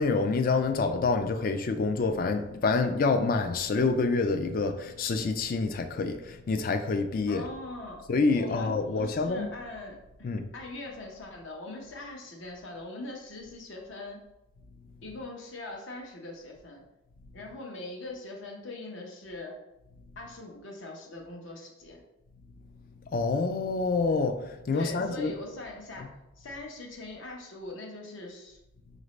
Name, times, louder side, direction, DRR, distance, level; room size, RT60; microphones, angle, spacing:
voice 1, 0.0-7.5 8.1-9.5 10.2-10.5 23.1-25.3 26.0-26.1, left 4 dB, 45° left, 0.3 m, -27 dB
voice 2, 7.3-8.0 8.3-14.2 15.0-16.8 17.3-19.6 20.2-22.0 24.7-28.6, left 2 dB, 70° left, 0.9 m, -42 dB
5.0 x 2.6 x 3.1 m
head